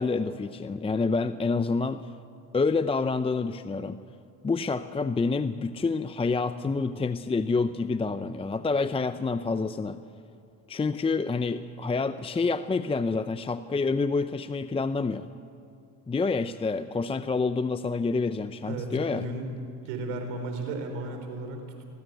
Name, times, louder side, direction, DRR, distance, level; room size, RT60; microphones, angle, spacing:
voice 1, 0.0-2.0 2.5-4.0 4.4-10.0 10.7-15.3 16.1-19.2, left 4 dB, 15° left, 12 dB, 0.6 m, -28 dB
voice 2, 18.7-19.5 19.8-21.8, right 2 dB, 90° right, 5 dB, 4.4 m, -34 dB
23.0 x 18.5 x 9.2 m, 2.7 s
supercardioid pair, 95°, 36 cm